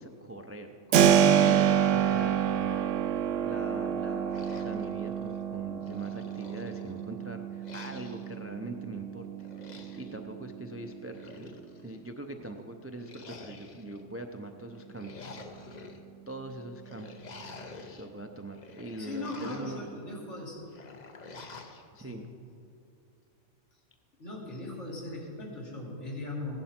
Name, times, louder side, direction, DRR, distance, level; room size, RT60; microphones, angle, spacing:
voice 1, 0.0-9.3 9.9-11.5 11.8-15.5 16.3-17.3 18.0-19.9 21.9-22.3, right 1 dB, 20° right, 5 dB, 0.3 m, -42 dB
Keyboard (musical), 0.9-11.6, right 9 dB, 85° right, 0.9 m, -28 dB
sound 1, 4.3-5.4 5.8-7.1 7.6-8.4 9.4-10.2 11.0-11.9 13.0-14.0 14.8-16.0 16.8-18.1 18.5-19.8 20.7-21.8, left 3 dB, 40° left, 0.9 m, -48 dB
voice 2, 19.0-20.6 22.0-22.2 24.2-26.6, left 2 dB, 70° left, -3 dB, 2.8 m, -39 dB
16.0 x 11.0 x 4.4 m, 2.5 s
omnidirectional pair, 1.3 m